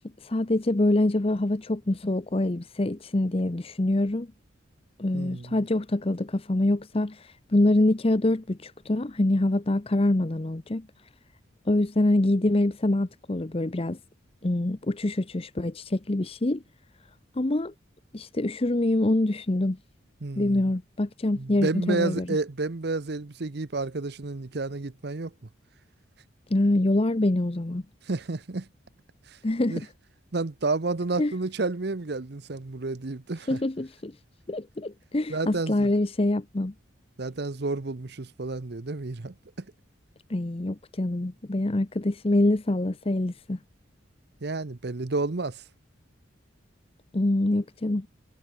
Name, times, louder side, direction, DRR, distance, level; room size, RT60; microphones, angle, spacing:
voice 1, 0.2-4.3 5.0-10.9 11.7-14.0 14.4-16.6 17.4-17.7 18.1-19.8 20.4-22.3 26.5-27.8 29.4-29.8 31.2-31.3 33.5-34.1 34.5-36.7 40.3-43.6 47.1-48.1, left 1 dB, 30° left, 0.7 m, -25 dB
voice 2, 5.1-5.6 20.2-20.6 21.3-25.3 28.1-28.7 29.3-29.4 29.7-29.8 30.3-33.6 35.3-35.9 37.2-39.6 44.4-45.6, right 3 dB, 60° right, 0.8 m, -30 dB
head